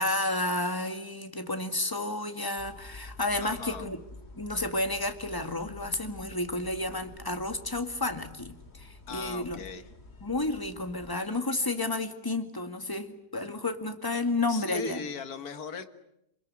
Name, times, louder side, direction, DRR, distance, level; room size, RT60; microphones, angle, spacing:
voice 1, 0.0-4.0 4.3-9.6 10.2-15.0, left 2 dB, 15° left, 8 dB, 2.0 m, -31 dB
sound 1, 2.6-11.2, left 2 dB, 40° left, 2.5 m, -49 dB
voice 2, 3.4-3.9 9.1-9.8 14.5-15.9, left 6 dB, 70° left, 10 dB, 2.0 m, -38 dB
28.5 x 21.5 x 9.7 m, 0.83 s
omnidirectional pair, 1.7 m